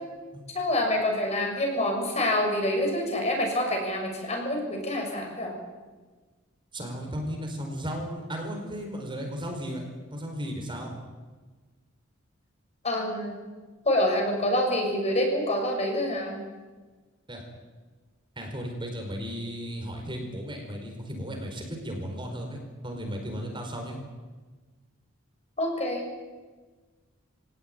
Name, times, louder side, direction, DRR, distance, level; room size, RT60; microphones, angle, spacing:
voice 1, 0.5-5.6 12.8-13.4 13.8-16.4 25.6-26.0, left 1 dB, 35° left, 1 dB, 6.7 m, -27 dB
voice 2, 6.7-9.8 10.1-10.9 17.3-17.4 18.4-24.0, equal, 25° right, 2 dB, 4.7 m, -35 dB
24.0 x 18.0 x 9.4 m, 1.3 s
head